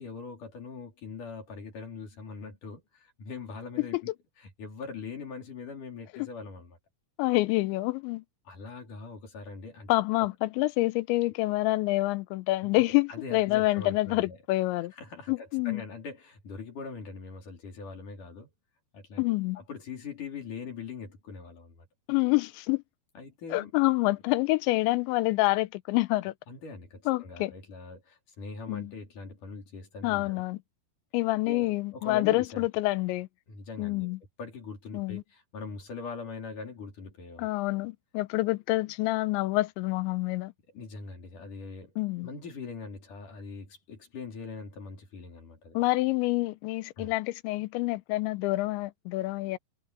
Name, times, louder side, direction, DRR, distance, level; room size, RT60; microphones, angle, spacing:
voice 1, 0.0-4.1 4.4-6.8 8.4-9.9 12.6-14.4 15.0-18.5 18.9-21.9 23.1-23.7 26.5-30.4 31.3-32.7 33.5-34.1 34.4-37.5 40.7-41.9 42.2-45.8 47.0-47.1, left 4 dB, 45° left, 5.2 m, -42 dB
voice 2, 7.2-8.2 9.9-14.9 15.3-15.8 19.2-19.6 22.1-22.8 23.5-26.3 27.1-27.5 28.7-28.9 30.0-30.6 31.1-33.3 33.8-34.2 34.9-35.2 37.4-40.5 42.0-42.3 45.7-49.6, left 20 dB, 85° left, 3.0 m, -27 dB
omnidirectional pair, 5.3 m